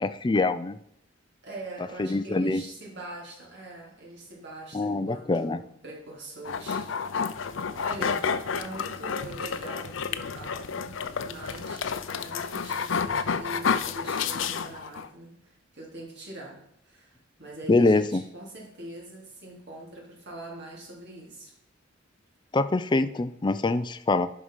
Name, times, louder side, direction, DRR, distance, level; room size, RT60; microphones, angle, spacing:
voice 1, 0.0-0.8 2.0-2.6 4.7-5.6 17.7-18.2 22.5-24.3, left 2 dB, 25° left, 12 dB, 0.4 m, -24 dB
voice 2, 1.4-6.9 7.2-7.4 7.7-11.0 11.2-21.5, right 1 dB, 60° right, -2 dB, 3.5 m, -43 dB
sound 1, 6.4-15.1, left 6 dB, 75° left, 0.6 m, -30 dB
11.0 x 4.8 x 5.6 m, 0.74 s
head